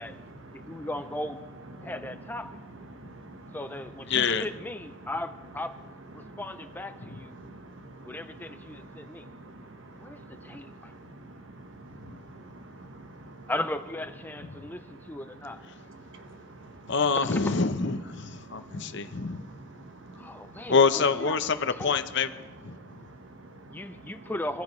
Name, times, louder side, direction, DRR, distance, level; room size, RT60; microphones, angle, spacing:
voice 1, 0.0-0.9 1.7-1.9 2.9-3.6 6.2-6.4 6.9-13.5 14.5-17.0 18.2-20.7 22.7-24.1, right 2 dB, 65° right, 7 dB, 1.2 m, -48 dB
voice 2, 0.5-1.4 1.8-2.6 3.5-5.8 6.1-7.4 8.0-9.3 10.0-10.9 13.5-15.6 17.1-17.6 20.1-21.4 21.7-21.9 23.7-24.6, left 1 dB, 10° left, 9 dB, 0.4 m, -37 dB
voice 3, 4.1-4.5 7.0-7.2 12.0-12.1 16.9-19.4 20.7-22.3 22.6-23.1, left 5 dB, 55° left, 10 dB, 0.8 m, -26 dB
24.5 x 15.5 x 3.2 m, 1.3 s
head